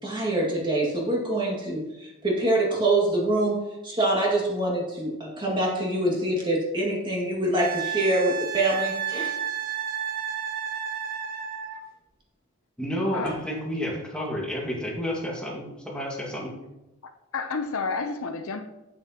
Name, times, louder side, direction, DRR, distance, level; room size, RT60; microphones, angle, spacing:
voice 1, 0.0-9.4 13.2-13.3, right 1 dB, 20° right, -3 dB, 2.0 m, -25 dB
Wind instrument woodwind instrument, 7.6-11.8 14.5-14.6, right 8 dB, 40° right, 1.0 m, -31 dB
voice 2, 12.8-16.6, equal, 5° left, -3 dB, 1.8 m, -30 dB
voice 3, 17.0-18.7, left 4 dB, 75° left, 7 dB, 0.7 m, -31 dB
8.9 x 8.3 x 2.9 m, 0.98 s
head